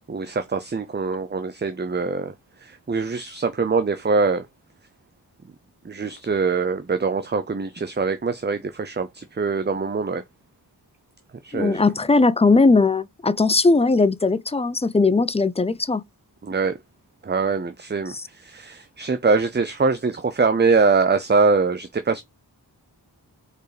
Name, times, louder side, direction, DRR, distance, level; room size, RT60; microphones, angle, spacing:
voice 1, 0.1-2.3 2.6-4.5 5.8-10.2 11.4-11.8 16.4-16.8 17.2-22.2, right 4 dB, 25° right, 0.6 m, -23 dB
voice 2, 11.5-16.0 18.1-18.2, left 3 dB, 15° left, 0.6 m, -19 dB
4.7 x 4.6 x 5.0 m
cardioid pair, 55°, 42 cm